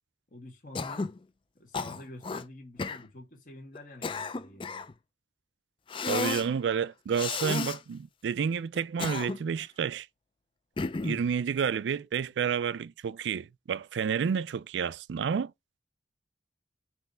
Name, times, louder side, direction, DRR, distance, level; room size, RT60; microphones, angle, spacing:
voice 1, 0.3-1.1 1.6-4.9, left 1 dB, 50° left, 2.0 m, -47 dB
Cough, 0.8-1.2 1.7-2.4 2.8-3.0 3.8-4.9 5.9-6.5 7.1-7.8 8.8-9.6 10.8-11.3, left 4 dB, 30° left, 0.4 m, -33 dB
voice 2, 6.0-10.1 11.0-15.5, right 7 dB, 85° right, 0.3 m, -30 dB
5.5 x 3.1 x 5.6 m
head